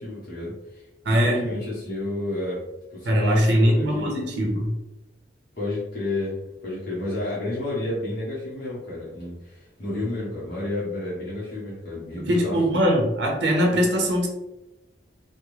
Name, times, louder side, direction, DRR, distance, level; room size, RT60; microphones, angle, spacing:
voice 1, 0.0-2.7 2.9-4.1 5.5-12.8, left 2 dB, 55° left, -7 dB, 0.9 m, -31 dB
voice 2, 1.1-1.4 3.0-4.7 12.2-14.3, equal, 70° right, 0 dB, 0.7 m, -21 dB
3.5 x 2.1 x 3.1 m, 0.94 s
head